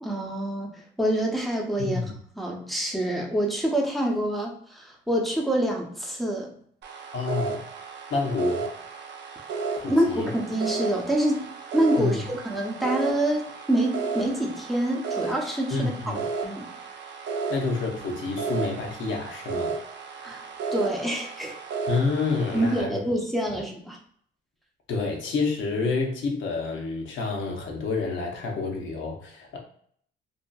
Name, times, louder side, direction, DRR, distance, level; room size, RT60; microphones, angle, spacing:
voice 1, 0.0-6.5 9.8-16.2 16.4-16.7 20.2-20.4 20.7-21.6 22.5-24.0, right 1 dB, ahead, -1 dB, 0.6 m, -26 dB
voice 2, 1.8-2.1 7.1-7.6 8.1-8.6 9.8-10.3 12.0-12.2 15.7-16.2 17.5-19.7 21.9-23.0 23.5-23.6 24.9-29.6, left 4 dB, 75° left, 0 dB, 0.8 m, -28 dB
sound 1, 6.8-22.8, right 4 dB, 65° right, 0.5 m, -34 dB
2.7 x 2.4 x 2.3 m, 0.62 s
cardioid pair, 90°, 20 cm